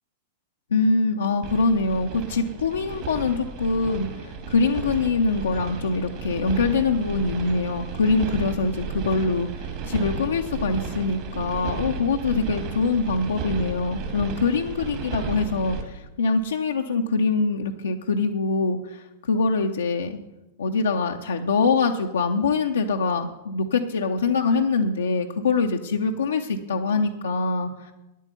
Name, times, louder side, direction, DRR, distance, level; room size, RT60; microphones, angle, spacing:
voice 1, 0.7-20.2 20.6-27.9, left 4 dB, 70° left, 2 dB, 0.7 m, -24 dB
sound 1, 1.4-15.8, right 4 dB, 45° right, 2.2 m, -33 dB
9.7 x 8.4 x 6.8 m, 1.0 s
figure-of-eight pair, 95°, 0 cm